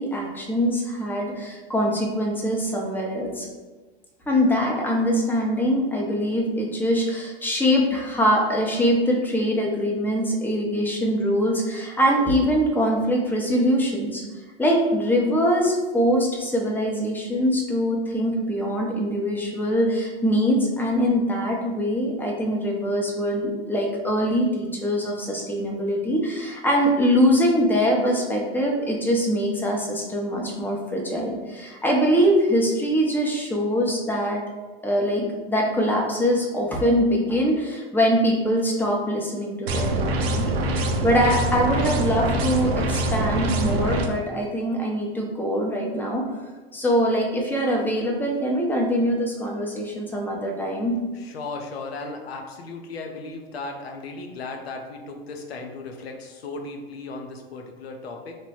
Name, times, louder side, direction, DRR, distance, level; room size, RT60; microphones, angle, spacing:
voice 1, 0.0-3.5 4.3-14.2 14.6-34.4 34.8-40.5 41.0-46.2 46.7-51.0, equal, 5° left, -1 dB, 0.6 m, -23 dB
sound 1, 39.7-44.1, right 1 dB, 85° right, 0.6 m, -24 dB
voice 2, 51.1-58.3, left 3 dB, 90° left, 3 dB, 0.6 m, -36 dB
3.1 x 2.2 x 4.2 m, 1.3 s
hypercardioid pair, 105°, 30 cm